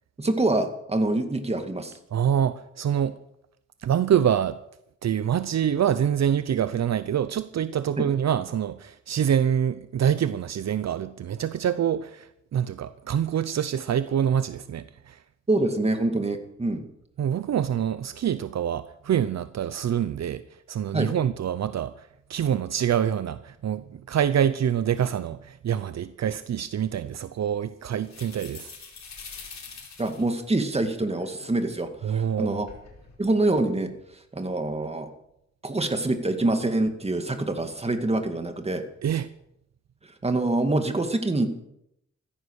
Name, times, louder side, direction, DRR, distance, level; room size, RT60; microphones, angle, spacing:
voice 1, 0.2-2.0 8.0-8.1 15.5-16.8 20.9-21.1 30.0-32.7 33.2-33.9 34.3-35.1 35.6-38.8 40.2-41.5, right 2 dB, 20° right, 2.2 m, -25 dB
voice 2, 2.1-3.2 3.8-4.6 5.0-15.2 17.2-20.4 20.7-28.7 32.0-32.7 39.0-39.3, right 9 dB, 65° right, 0.7 m, -26 dB
sound 1, 28.0-30.4 31.0-31.7 32.3-33.2, left 5 dB, 65° left, 4.9 m, -44 dB
16.0 x 14.0 x 6.5 m
wide cardioid pair, 120°, 29 cm